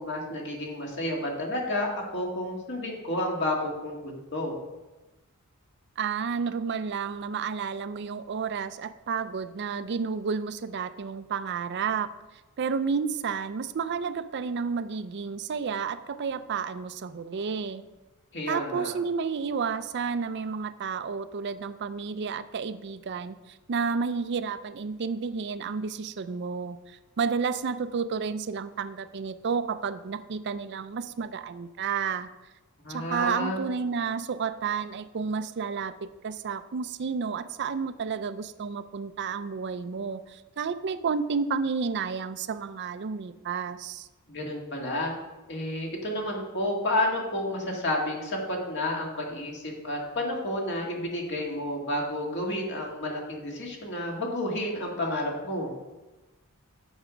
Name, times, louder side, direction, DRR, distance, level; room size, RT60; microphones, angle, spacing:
voice 1, 0.0-4.6 18.3-19.0 32.8-33.6 44.3-45.1 45.5-55.7, left 1 dB, 55° left, 0 dB, 2.0 m, -31 dB
voice 2, 6.0-12.1 12.6-17.8 18.5-32.3 32.9-44.1, right 5 dB, 50° right, 13 dB, 0.4 m, -31 dB
8.2 x 7.0 x 5.1 m, 1.1 s
head